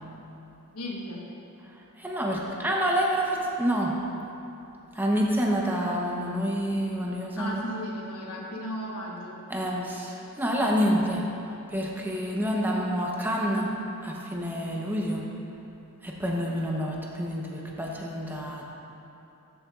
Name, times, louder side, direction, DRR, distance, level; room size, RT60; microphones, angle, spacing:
voice 1, 0.7-1.3 7.4-9.9, equal, 80° left, -2 dB, 1.3 m, -36 dB
voice 2, 2.0-4.0 4.9-7.6 9.5-11.3 11.7-13.7 14.0-15.3 16.0-18.7, equal, 10° right, -2 dB, 0.9 m, -28 dB
13.5 x 7.0 x 2.5 m, 2.9 s
head